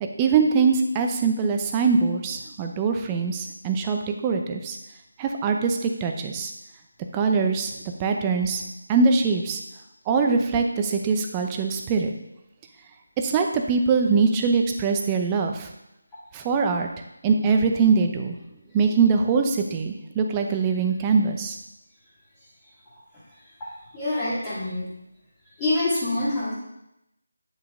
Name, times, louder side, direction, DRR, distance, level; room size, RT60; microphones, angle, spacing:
voice 1, 0.0-4.8 5.2-6.5 7.1-7.7 8.0-8.6 8.9-9.6 10.1-12.1 13.2-15.7 16.3-16.9 17.2-18.4 18.7-21.6, right 5 dB, 15° right, 4 dB, 0.7 m, -22 dB
voice 2, 23.9-24.9 25.6-26.5, left 2 dB, 15° left, -13 dB, 2.2 m, -25 dB
9.3 x 5.8 x 3.7 m, 0.85 s
figure-of-eight pair, 165°, 0 cm